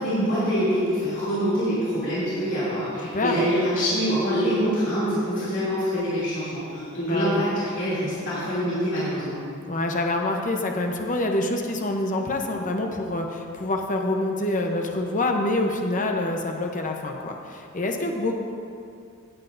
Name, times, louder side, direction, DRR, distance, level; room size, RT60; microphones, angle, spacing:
voice 1, 0.0-9.4, equal, 60° left, -11 dB, 2.7 m, -25 dB
voice 2, 3.1-3.5 7.0-7.4 9.7-18.3, left 2 dB, 40° left, 2 dB, 0.8 m, -26 dB
16.5 x 8.2 x 2.6 m, 2.4 s
head